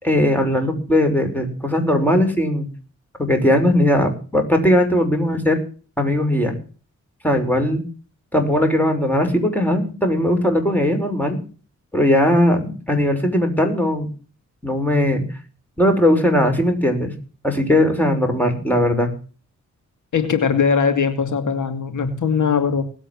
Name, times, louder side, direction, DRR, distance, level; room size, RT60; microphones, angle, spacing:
voice 1, 0.0-2.7 3.2-5.6 6.0-6.5 7.2-7.8 8.3-11.4 11.9-14.1 14.6-15.2 15.8-17.1 17.4-19.1, left 1 dB, 5° left, 5 dB, 5.9 m, -18 dB
voice 2, 20.1-22.8, left 6 dB, 80° left, 8 dB, 2.5 m, -20 dB
19.0 x 8.7 x 7.7 m, 0.38 s
cardioid pair, 75°, 30 cm